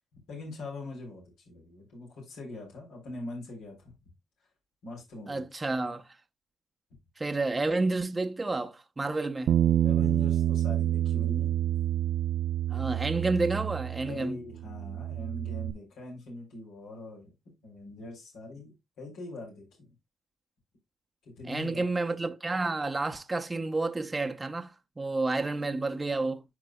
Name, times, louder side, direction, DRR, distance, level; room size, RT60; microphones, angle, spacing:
voice 1, 0.3-3.9 4.8-5.4 9.8-11.5 14.1-17.3 17.6-19.9 21.2-21.9, left 2 dB, 85° left, 3.7 m, -42 dB
voice 2, 5.3-6.0 7.2-9.5 12.7-14.4 21.5-26.4, right 3 dB, 20° right, 0.8 m, -30 dB
Bass guitar, 9.5-14.2 14.5-15.7, right 11 dB, 70° right, 0.5 m, -28 dB
12.0 x 4.0 x 2.2 m
cardioid pair, 90°, 0 cm